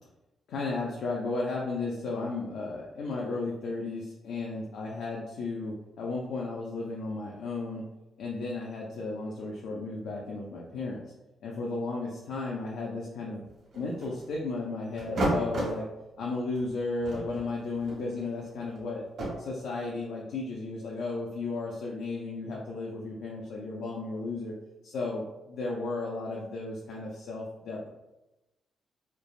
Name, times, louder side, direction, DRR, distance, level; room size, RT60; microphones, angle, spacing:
voice 1, 0.5-7.8 8.2-11.0 11.4-13.4 13.7-15.8 16.2-19.0 19.4-24.5 24.8-27.9, left 3 dB, 80° left, -3 dB, 0.4 m, -34 dB
sound 1, 13.4-14.3 15.0-15.8 16.5-16.7 17.0-19.3, right 1 dB, 65° right, 1.1 m, -32 dB
3.2 x 2.1 x 2.4 m, 0.99 s
cardioid pair, 140°, 0 cm